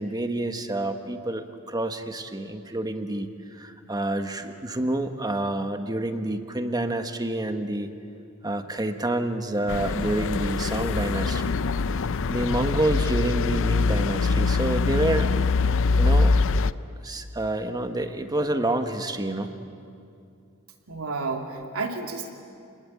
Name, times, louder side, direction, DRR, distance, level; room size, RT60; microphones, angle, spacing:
voice 1, 0.0-7.9 8.4-11.6 12.3-15.3 16.0-16.3 17.0-19.5, right 1 dB, 20° right, 7 dB, 1.4 m, -28 dB
sound 1, 9.7-16.7, left 4 dB, 65° left, 0.5 m, -23 dB
voice 2, 20.9-22.3, right 3 dB, 90° right, 2 dB, 2.8 m, -31 dB
29.0 x 21.0 x 8.8 m, 2.4 s
head